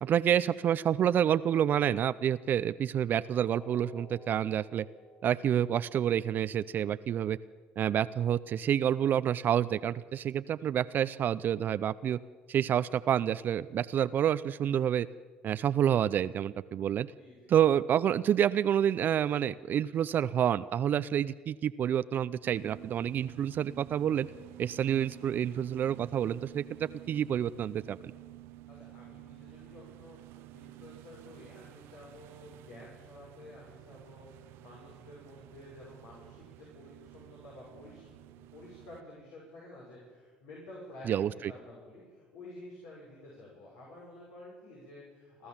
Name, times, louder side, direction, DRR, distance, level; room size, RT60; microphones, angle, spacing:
voice 1, 0.0-4.9 5.2-7.4 7.8-12.2 12.5-15.1 15.4-17.1 17.5-24.3 24.6-28.0 41.1-41.5, right 10 dB, 45° right, 14 dB, 0.5 m, -28 dB
sound 1, 3.5-9.5 9.9-10.1 10.6-10.7, left 2 dB, 50° left, 2.7 m, -58 dB
voice 2, 17.2-17.5 28.7-30.2 30.5-38.1 38.3-45.5, left 1 dB, 75° left, -4 dB, 6.3 m, -51 dB
sound 2, 22.4-39.0, right 14 dB, 70° right, 0.8 m, -51 dB
29.5 x 12.5 x 7.3 m, 1.5 s
supercardioid pair, 80°, 4 cm